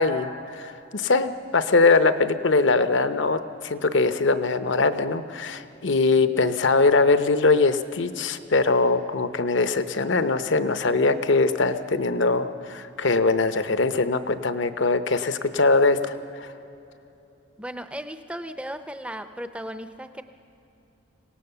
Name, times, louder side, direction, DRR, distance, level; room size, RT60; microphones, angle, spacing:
voice 1, 0.0-16.5, left 3 dB, 70° left, 11 dB, 0.8 m, -22 dB
voice 2, 17.6-20.2, equal, 5° right, 10 dB, 0.6 m, -36 dB
24.5 x 17.5 x 6.8 m, 3.0 s
head